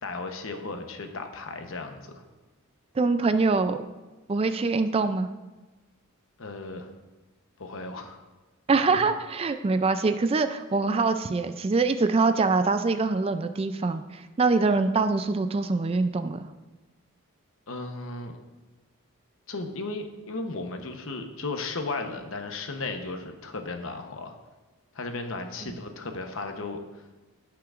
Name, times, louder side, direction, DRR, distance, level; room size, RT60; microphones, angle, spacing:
voice 1, 0.0-2.2 6.4-6.9 7.6-8.2 8.9-9.0 17.7-18.4 19.5-24.3 24.9-27.0, left 3 dB, 65° left, 5 dB, 0.9 m, -35 dB
voice 2, 3.0-3.8 4.3-5.3 8.7-14.0 14.4-16.4, right 3 dB, 25° right, 9 dB, 0.3 m, -24 dB
16.5 x 5.8 x 2.5 m, 1.2 s
head